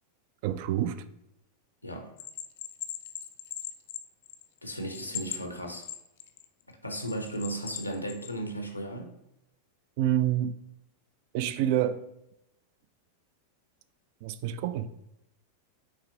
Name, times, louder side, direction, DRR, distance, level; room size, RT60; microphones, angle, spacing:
voice 1, 0.4-1.0 10.0-10.5 11.3-12.0 14.2-14.9, right 11 dB, 45° right, 0.3 m, -27 dB
Bell, 2.2-4.6 4.9-6.5 7.0-8.3, left 11 dB, 50° left, 0.3 m, -39 dB
voice 2, 4.6-5.9 6.7-9.1, right 1 dB, 85° left, 0.7 m, -35 dB
5.7 x 3.3 x 2.7 m
figure-of-eight pair, 90°, 0 cm